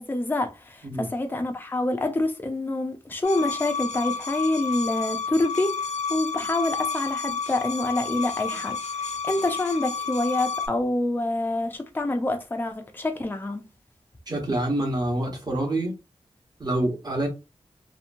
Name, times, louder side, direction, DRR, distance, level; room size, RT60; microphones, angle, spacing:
voice 1, 0.0-13.6, left 2 dB, 15° left, 0.5 m, -27 dB
sound 1, 3.2-10.7, left 5 dB, 90° left, 0.4 m, -31 dB
voice 2, 14.3-15.9 16.6-17.3, right 1 dB, 35° right, 1.0 m, -26 dB
2.9 x 2.1 x 2.5 m
wide cardioid pair, 110°, 12 cm